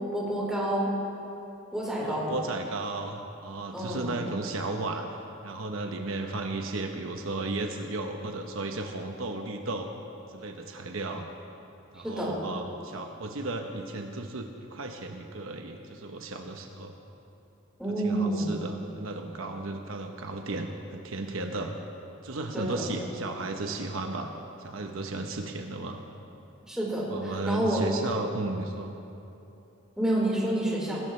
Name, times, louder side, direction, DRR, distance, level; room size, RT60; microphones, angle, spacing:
voice 1, 0.1-0.9 1.7-2.3 3.7-4.1 12.0-12.3 17.8-18.5 22.5-22.9 26.7-27.8 30.0-31.0, right 1 dB, 5° right, -6 dB, 4.3 m, -28 dB
voice 2, 2.0-5.1 5.4-10.0 10.3-11.3 11.9-16.9 18.0-21.7 22.2-24.3 24.6-26.0 27.1-28.9, right 2 dB, 70° right, 4 dB, 1.0 m, -34 dB
20.5 x 17.5 x 3.3 m, 2.9 s
head